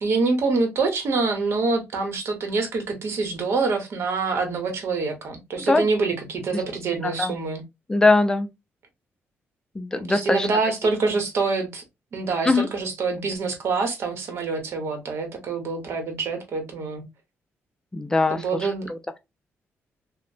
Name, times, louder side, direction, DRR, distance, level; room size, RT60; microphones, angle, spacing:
voice 1, 0.0-7.6 10.1-11.8 12.1-17.0 18.3-18.9, right 4 dB, 65° right, 0.9 m, -26 dB
voice 2, 7.0-7.3 7.9-8.5 9.8-10.5 12.4-12.7 17.9-18.4 18.9-19.2, left 3 dB, 15° left, 0.4 m, -21 dB
2.9 x 2.0 x 2.5 m
cardioid pair, 110°, 5 cm